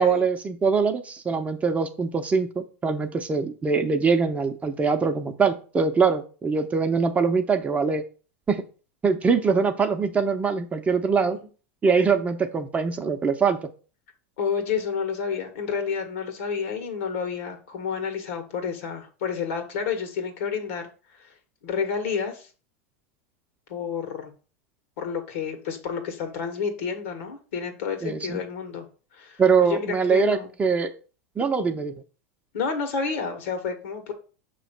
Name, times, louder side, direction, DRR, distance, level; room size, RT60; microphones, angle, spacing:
voice 1, 0.0-8.0 8.5-8.6 9.0-11.4 11.8-13.6 28.0-28.4 29.4-30.9 31.4-31.9, right 5 dB, 20° right, 6 dB, 0.7 m, -23 dB
voice 2, 14.4-20.9 21.1-21.3 21.6-22.5 23.7-24.3 25.0-28.9 29.1-30.5 32.5-34.1, left 6 dB, 70° left, 5 dB, 1.7 m, -30 dB
6.3 x 3.1 x 5.8 m, 0.36 s
hypercardioid pair, 105°, 7 cm